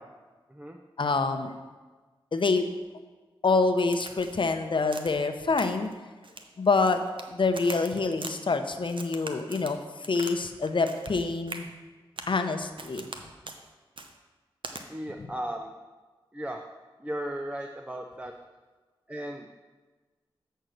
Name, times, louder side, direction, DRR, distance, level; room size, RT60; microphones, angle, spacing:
voice 1, 1.0-1.5 2.3-2.7 3.4-5.9 6.6-7.0 7.3-11.7 12.3-13.1, left 3 dB, 55° left, 7 dB, 0.8 m, -26 dB
Crack, 3.9-4.5 4.9-5.2 5.6-5.9 6.2-7.3 7.5-8.4 8.9-10.4 10.6-11.2 11.5-11.7 12.2-12.4 12.8-13.2 13.5-13.6 14.0-14.1 14.6-14.8, right 3 dB, 60° right, 0.8 m, -41 dB
voice 2, 14.9-15.7 16.3-16.7 17.0-18.3 19.1-19.5, right 1 dB, 15° right, 3 dB, 0.7 m, -36 dB
7.7 x 4.6 x 6.7 m, 1.3 s
cardioid pair, 40°, 10 cm